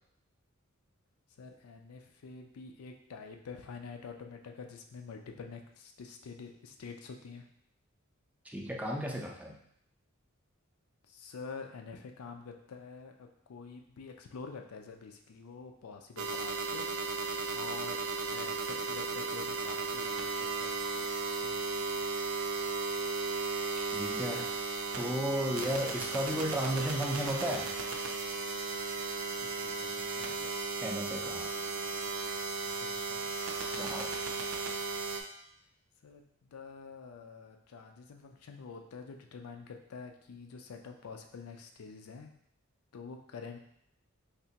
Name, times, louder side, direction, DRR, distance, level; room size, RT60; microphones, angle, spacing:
voice 1, 1.4-7.4 11.1-16.9 17.2-18.0 18.3-21.0 21.4-22.1 29.4-30.6 32.6-33.3 36.0-42.3 42.9-43.6, left 5 dB, 85° left, 4 dB, 0.4 m, -47 dB
voice 2, 8.5-9.6 23.9-24.5 24.9-27.7 30.8-31.5 33.8-34.1, equal, 5° right, -1 dB, 0.4 m, -34 dB
sound 1, 16.2-35.2, right 4 dB, 75° right, 0.5 m, -35 dB
3.3 x 2.8 x 2.8 m, 0.72 s
head